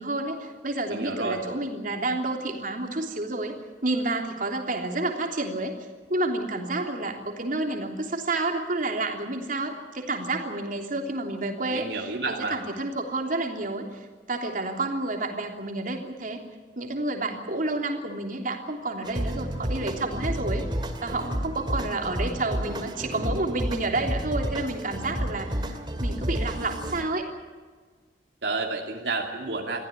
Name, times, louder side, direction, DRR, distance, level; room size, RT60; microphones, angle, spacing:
voice 1, 0.0-3.5 3.8-5.7 6.1-16.4 16.8-20.7 21.0-27.3, right 2 dB, 50° right, 3 dB, 3.3 m, -30 dB
voice 2, 0.9-1.4 11.7-12.6 28.4-29.8, right 3 dB, 70° right, 1 dB, 2.7 m, -30 dB
sound 1, 19.0-27.0, equal, 25° right, 2.3 m, -31 dB
23.5 x 15.5 x 9.9 m, 1.5 s
head